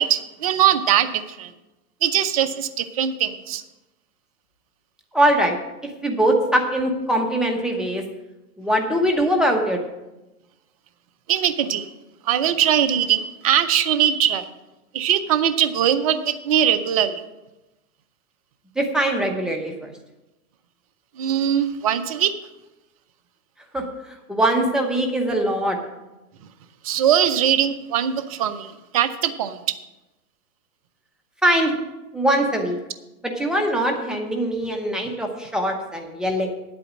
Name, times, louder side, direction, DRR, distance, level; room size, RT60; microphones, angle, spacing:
voice 1, 0.0-1.5 2.0-3.6 11.3-11.9 12.3-14.5 14.9-17.2 21.2-22.3 26.8-29.6, right 10 dB, 25° right, 11 dB, 0.4 m, -21 dB
voice 2, 5.1-5.6 6.0-8.0 8.6-9.8 18.8-19.9 23.7-25.8 31.4-31.7 32.1-32.8 33.4-36.5, right 1 dB, ahead, 2 dB, 0.9 m, -22 dB
9.3 x 8.5 x 6.1 m, 1.0 s
hypercardioid pair, 135°, 46 cm